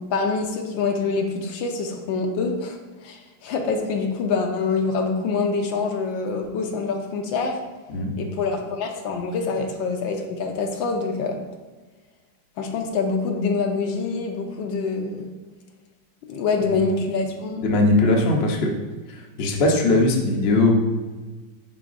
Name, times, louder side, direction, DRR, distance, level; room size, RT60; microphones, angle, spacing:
voice 1, 0.1-2.8 3.0-7.6 8.2-11.3 12.6-15.3 16.3-17.6, left 4 dB, 80° left, 3 dB, 1.4 m, -25 dB
voice 2, 17.6-18.7 19.4-20.7, left 2 dB, 55° left, 1 dB, 0.6 m, -19 dB
9.8 x 3.9 x 2.5 m, 1.3 s
omnidirectional pair, 2.1 m